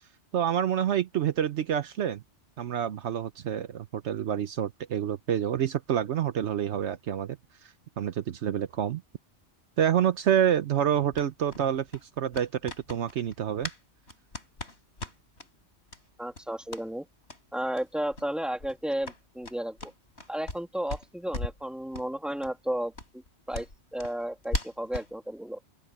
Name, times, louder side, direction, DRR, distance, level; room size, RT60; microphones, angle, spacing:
voice 1, 0.3-2.2 2.6-7.4 8.0-9.0 9.8-11.9 12.2-13.7, right 9 dB, 70° right, 1.0 m, -27 dB
sound 1, 11.1-13.8 14.1-15.5 15.9-16.0 16.3-16.9 17.2-17.4 17.7-17.8 18.1-18.3 18.6-20.6 20.9-21.6 21.9-22.1 22.4-22.5 22.9-25.1, left 2 dB, 65° left, 5.2 m, -38 dB
voice 2, 16.2-17.1 17.5-19.9 20.3-23.2 23.5-23.7 23.9-25.6, right 1 dB, ahead, 2.3 m, -33 dB
open air
omnidirectional pair, 1.2 m